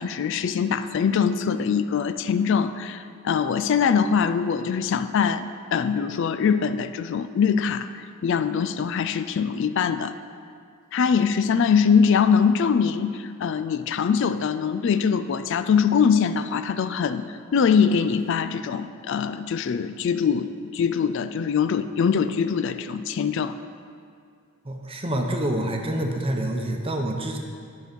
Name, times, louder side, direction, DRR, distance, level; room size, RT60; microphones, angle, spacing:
voice 1, 0.0-10.1 10.9-17.2 17.5-20.5 20.7-23.6, left 6 dB, 60° left, 11 dB, 0.3 m, -23 dB
voice 2, 24.6-27.4, right 1 dB, 25° right, 3 dB, 0.8 m, -27 dB
10.5 x 6.2 x 5.2 m, 2.3 s
head